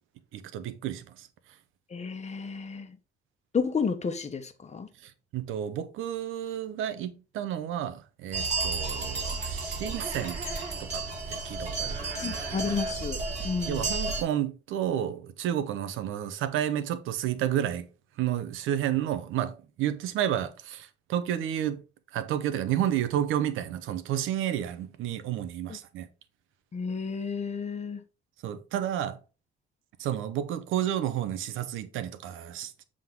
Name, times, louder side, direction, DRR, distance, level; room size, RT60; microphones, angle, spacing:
voice 1, 0.3-1.3 5.3-10.4 10.8-11.0 11.3-12.5 13.7-17.9 18.2-21.8 22.1-26.1 28.4-29.2 30.0-32.7, right 11 dB, 90° right, 0.8 m, -31 dB
voice 2, 1.9-3.0 3.5-4.9 12.2-13.2 13.4-13.9 25.7-25.8 26.7-28.0, left 5 dB, 35° left, 1.1 m, -31 dB
sound 1, 8.3-14.2, right 3 dB, 35° right, 3.8 m, -32 dB
7.6 x 3.8 x 3.7 m
cardioid pair, 90°, 20 cm